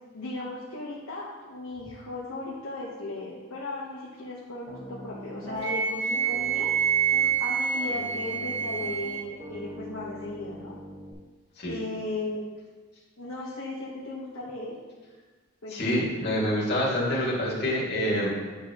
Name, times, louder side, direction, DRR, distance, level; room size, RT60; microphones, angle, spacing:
voice 1, 0.1-6.7 7.4-10.8 11.7-12.5 13.2-14.8 15.6-15.8 16.3-16.5, left 2 dB, 80° left, -5 dB, 1.0 m, -36 dB
Piano, 4.7-5.7 6.1-7.4 7.7-11.1, equal, 30° right, 1.1 m, -43 dB
Wind instrument woodwind instrument, 5.6-9.3, right 7 dB, 70° right, 2.2 m, -27 dB
voice 2, 15.7-18.3, equal, 50° left, -6 dB, 2.1 m, -26 dB
9.3 x 5.6 x 3.0 m, 1.3 s
head